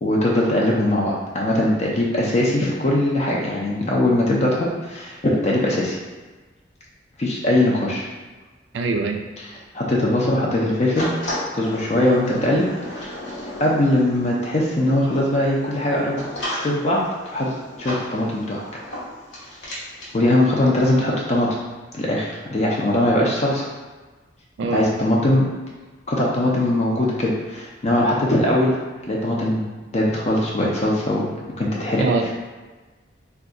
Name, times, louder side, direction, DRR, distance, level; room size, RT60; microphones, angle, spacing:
voice 1, 0.0-6.0 7.2-8.1 9.7-11.1 11.5-13.2 13.6-16.2 16.5-18.6 20.1-21.6 21.9-23.7 24.7-25.5 26.1-28.8 29.1-29.7 29.9-32.1, left 1 dB, 35° left, -3 dB, 0.4 m, -21 dB
voice 2, 8.7-9.2 24.6-24.9 32.0-32.3, right 3 dB, 75° right, 4 dB, 0.3 m, -23 dB
sound 1, 10.9-20.1, left 1 dB, 80° left, 1.1 m, -34 dB
2.5 x 2.3 x 3.8 m, 1.3 s
head